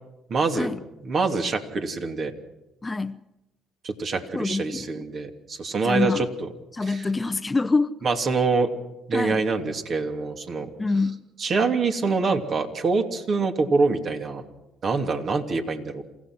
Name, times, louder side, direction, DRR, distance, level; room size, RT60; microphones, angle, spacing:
voice 1, 0.3-0.7 1.0-2.3 3.8-6.3 6.9-7.0 8.0-8.7 9.1-10.7 11.4-14.4 14.8-16.0, right 4 dB, 50° right, 4 dB, 2.8 m, -25 dB
voice 2, 2.8-3.2 4.3-5.0 5.8-6.3 6.7-7.9 9.1-9.4 10.8-11.2, left 3 dB, 25° left, 11 dB, 0.8 m, -25 dB
28.0 x 15.5 x 6.3 m, 0.94 s
hypercardioid pair, 60°, 0 cm